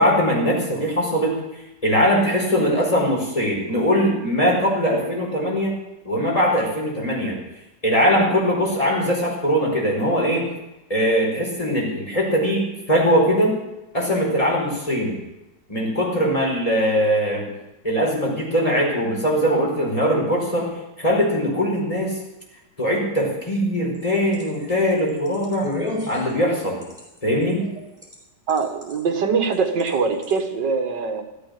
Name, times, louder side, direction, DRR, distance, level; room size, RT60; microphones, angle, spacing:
voice 1, 0.0-1.4 1.8-5.8 6.0-7.4 7.8-10.5 10.9-13.6 13.9-15.2 15.7-17.5 17.8-20.7 21.0-22.2 22.8-25.7 26.1-26.8 27.2-27.7, equal, 20° left, -2 dB, 5.1 m, -21 dB
sound 1, 23.8-28.2 28.5-29.0 29.5-29.9 30.2-30.3, left 1 dB, ahead, 4.6 m, -33 dB
voice 2, 28.5-31.2, right 5 dB, 85° right, 6 dB, 2.3 m, -23 dB
15.0 x 13.0 x 6.7 m, 0.97 s
omnidirectional pair, 1.8 m